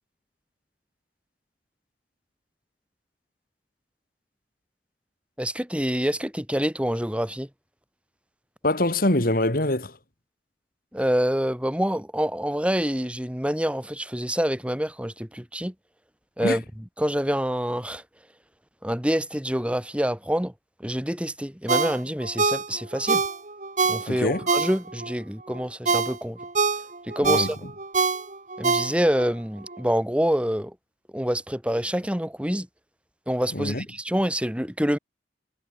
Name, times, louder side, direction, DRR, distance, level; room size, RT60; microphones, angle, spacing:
voice 1, 5.4-7.5 10.9-15.7 16.4-16.6 17.0-18.0 18.8-20.5 20.8-23.2 23.9-26.4 27.1-27.6 28.6-30.7 31.1-32.7 33.3-35.0, equal, 5° right, 4.7 m, -26 dB
voice 2, 8.6-10.0 16.4-16.6 24.1-24.5 27.2-27.5 33.5-33.8, left 1 dB, 55° left, 3.5 m, -24 dB
Ringtone, 21.7-25.1 25.5-29.3 29.7-29.8, right 4 dB, 45° right, 7.3 m, -25 dB
head